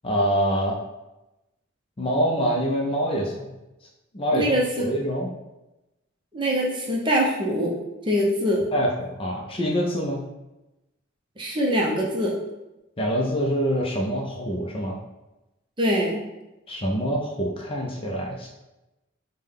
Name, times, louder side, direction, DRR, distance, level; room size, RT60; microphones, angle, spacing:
voice 1, 0.0-0.8 2.0-3.4 4.1-5.3 8.7-10.2 13.0-15.0 16.7-18.5, equal, 25° left, -1 dB, 0.4 m, -25 dB
voice 2, 4.3-4.8 6.3-7.7 8.0-8.6 11.4-12.4 15.8-16.2, equal, 25° right, -2 dB, 0.6 m, -23 dB
5.2 x 2.2 x 3.5 m, 0.99 s
head